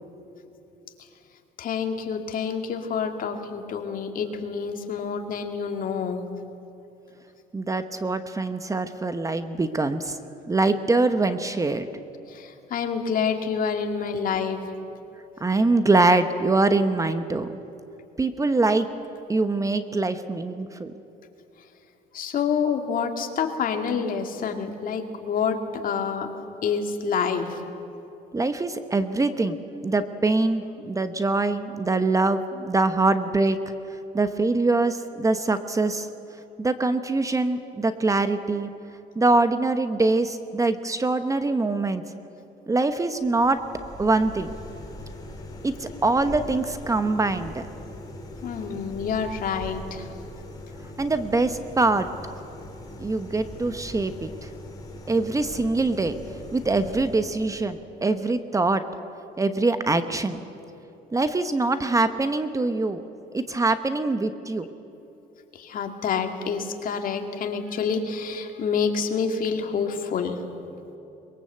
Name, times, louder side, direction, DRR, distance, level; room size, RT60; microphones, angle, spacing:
voice 1, 1.6-6.2 12.3-14.6 22.1-26.3 26.6-27.6 48.4-50.1 65.5-70.4, left 6 dB, 55° left, 5 dB, 2.3 m, -27 dB
voice 2, 7.5-10.2 10.5-11.9 15.4-17.5 18.2-18.9 19.3-20.9 28.3-33.6 34.1-36.1 36.6-38.7 39.1-42.0 42.7-43.6 44.0-44.5 45.6-47.6 51.0-52.1 53.0-54.5 55.1-56.1 56.5-58.8 59.4-60.4 61.1-63.0 63.3-64.7, right 3 dB, 20° right, 10 dB, 1.0 m, -23 dB
sound 1, 43.2-57.8, left 1 dB, 20° left, 3.8 m, -41 dB
23.0 x 22.0 x 8.0 m, 3.0 s
cardioid pair, 110°, 17 cm